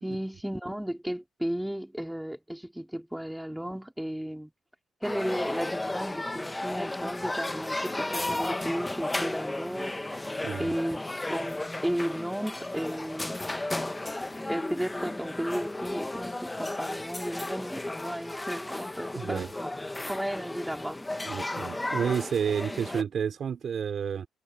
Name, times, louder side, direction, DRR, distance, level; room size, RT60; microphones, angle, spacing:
voice 1, 0.0-4.5 5.0-10.2 10.6-11.0 11.3-13.4 14.5-19.7 20.1-21.1, equal, 5° right, 3.6 m, -34 dB
sound 1, 5.0-23.0, left 2 dB, 15° left, 1.4 m, -34 dB
voice 2, 10.4-10.8 19.1-19.5 21.2-24.3, right 7 dB, 55° right, 3.4 m, -30 dB
cardioid pair, 90°, 0 cm